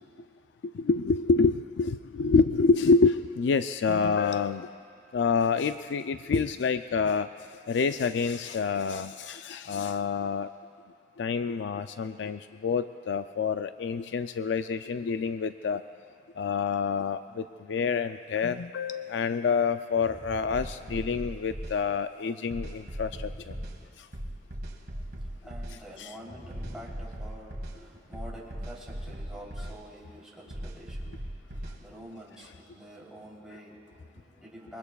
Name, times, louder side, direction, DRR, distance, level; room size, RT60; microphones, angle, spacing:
voice 1, 0.6-4.7 5.1-7.3 7.7-10.5 11.2-15.8 16.4-23.6 24.0-24.1 26.0-26.1, left 5 dB, 85° left, 10 dB, 0.4 m, -27 dB
sound 1, 19.9-21.5 22.9-24.6 26.1-27.7, left 1 dB, 30° left, 0.9 m, -48 dB
sound 2, 20.5-21.8 22.5-23.8 24.1-25.8 26.5-27.8 28.1-29.8 30.5-31.8, right 1 dB, 65° right, 1.6 m, -38 dB
voice 2, 24.9-34.8, equal, 5° right, -6 dB, 3.3 m, -47 dB
26.5 x 22.5 x 2.3 m, 2.3 s
head